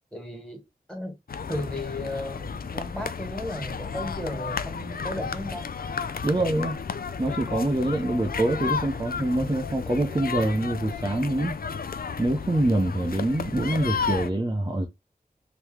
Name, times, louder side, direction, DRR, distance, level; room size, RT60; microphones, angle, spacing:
voice 1, 0.1-1.2 1.5-5.7, left 1 dB, 5° left, 2.0 m, -35 dB
sound 1, 1.3-14.3, left 6 dB, 70° left, 0.4 m, -33 dB
voice 2, 6.2-6.8 7.2-11.6 12.2-14.9, right 1 dB, 25° right, 0.8 m, -25 dB
3.1 x 3.0 x 3.4 m
wide cardioid pair, 55°, 16 cm